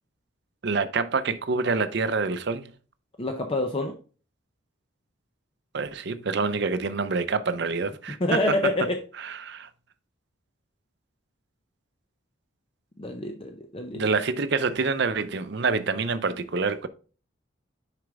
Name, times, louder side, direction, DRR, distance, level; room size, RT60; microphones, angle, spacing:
voice 1, 0.6-2.6 5.7-8.4 9.2-9.7 13.9-16.9, right 4 dB, 55° right, 0.5 m, -26 dB
voice 2, 3.2-3.9 8.2-9.0 13.0-14.1, left 1 dB, 25° left, 0.6 m, -27 dB
6.3 x 5.0 x 3.5 m
head